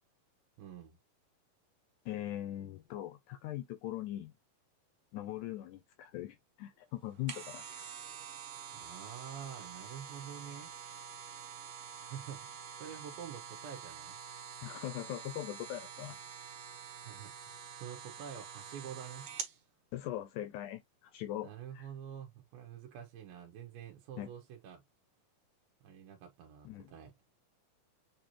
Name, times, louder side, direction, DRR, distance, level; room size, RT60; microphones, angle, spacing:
voice 1, 0.6-1.0 8.7-10.7 11.8-14.2 17.0-19.3 21.4-24.8 25.8-27.1, right 8 dB, 85° right, 2.6 m, -48 dB
voice 2, 2.1-4.3 5.1-7.9 14.6-16.2 19.9-21.5 21.7-21.9 24.2-24.3 26.7-26.9, left 13 dB, 85° left, 1.8 m, -41 dB
sound 1, 7.0-19.6 20.0-20.1, right 7 dB, 65° right, 2.5 m, -47 dB
6.9 x 2.6 x 2.9 m
omnidirectional pair, 4.0 m